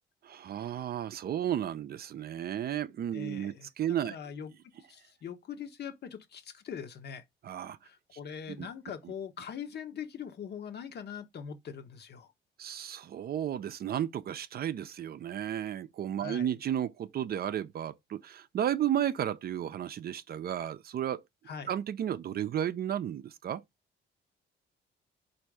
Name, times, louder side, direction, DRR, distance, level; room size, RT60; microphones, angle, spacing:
voice 1, 0.2-4.1 7.4-7.8 8.6-8.7 12.6-21.2 21.7-23.6, right 10 dB, 50° right, 0.4 m, -33 dB
voice 2, 3.1-3.7 4.0-4.5 4.8-7.2 7.8-12.3 16.2-16.6 21.5-21.7, left 7 dB, 55° left, 0.9 m, -42 dB
4.2 x 2.6 x 4.7 m
cardioid pair, 90°, 20 cm